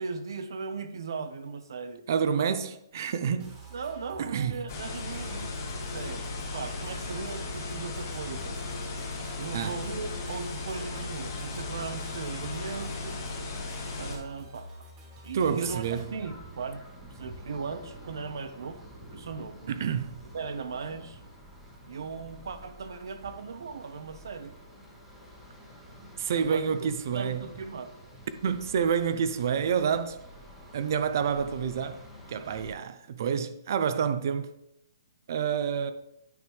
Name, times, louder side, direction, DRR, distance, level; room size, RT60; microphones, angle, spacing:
voice 1, 0.0-2.0 3.7-5.6 5.9-8.6 9.3-13.3 14.0-14.7 15.2-16.8 17.1-18.8 19.1-19.7 20.3-21.2 21.9-24.7 26.4-26.9 27.1-27.9, right 5 dB, 70° right, 0.9 m, -38 dB
voice 2, 2.1-3.6 4.2-4.6 9.5-9.8 15.3-16.0 19.7-20.1 26.2-27.4 28.4-30.2 30.7-32.0 32.3-34.5 35.3-35.9, right 7 dB, 50° right, 0.5 m, -28 dB
sound 1, 3.4-16.1, right 2 dB, 20° right, 1.6 m, -48 dB
sound 2, 4.7-14.2, left 3 dB, 40° left, 1.7 m, -36 dB
sound 3, 15.6-32.7, equal, 5° right, 1.1 m, -49 dB
9.4 x 5.2 x 3.2 m
hypercardioid pair, 165°, 2 cm